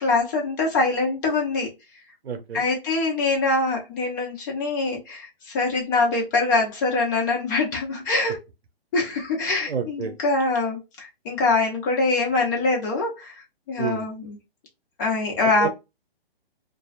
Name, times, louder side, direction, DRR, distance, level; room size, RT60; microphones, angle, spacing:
voice 1, 0.0-1.7 2.5-8.4 8.9-13.3 13.7-14.4 15.0-15.7, left 3 dB, 20° left, 0.6 m, -24 dB
voice 2, 2.2-2.6 9.7-10.1 13.8-14.1 15.6-15.7, right 7 dB, 85° right, 0.6 m, -29 dB
2.3 x 2.3 x 2.4 m
hypercardioid pair, 145°, 31 cm